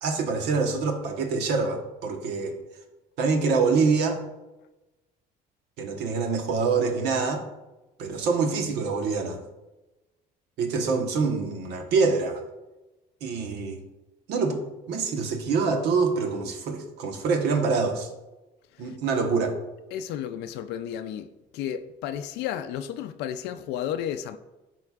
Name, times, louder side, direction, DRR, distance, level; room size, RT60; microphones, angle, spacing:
voice 1, 0.0-2.6 3.2-4.2 5.8-7.4 8.0-9.4 10.6-12.4 13.2-13.8 14.3-14.6 14.9-18.1 18.8-19.6, right 4 dB, 85° right, 1.2 m, -25 dB
voice 2, 19.9-21.3 21.5-24.4, left 10 dB, 85° left, 0.4 m, -32 dB
12.5 x 4.3 x 2.4 m
cardioid pair, 110°, 17 cm